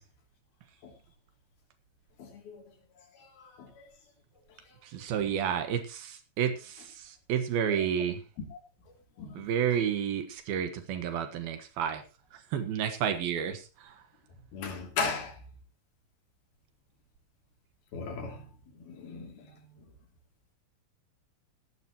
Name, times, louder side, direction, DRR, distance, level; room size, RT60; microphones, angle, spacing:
voice 1, 2.2-2.6 3.3-3.8 5.2-5.3 7.7-7.9 8.5-8.6 9.2-9.5 14.5-15.4 17.9-18.5 18.8-19.5, left 4 dB, 85° left, 3 dB, 4.9 m, -37 dB
voice 2, 4.9-8.2 9.4-12.0 12.5-13.9, right 8 dB, 85° right, 8 dB, 3.4 m, -31 dB
17.0 x 12.5 x 3.0 m, 0.30 s
omnidirectional pair, 4.2 m